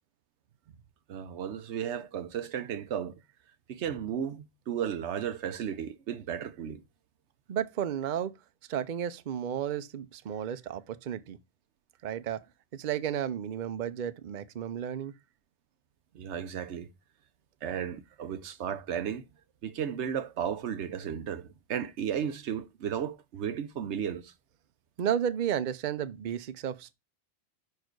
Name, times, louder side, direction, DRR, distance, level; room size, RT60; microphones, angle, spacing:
voice 1, 1.1-3.2 3.7-6.8 16.1-16.9 17.6-19.2 19.6-24.3, right 8 dB, 80° right, 1.0 m, -34 dB
voice 2, 7.5-8.3 8.7-11.4 12.0-12.4 12.7-15.1 25.0-26.9, right 9 dB, 50° right, 0.7 m, -32 dB
5.8 x 4.5 x 4.5 m
omnidirectional pair, 1.2 m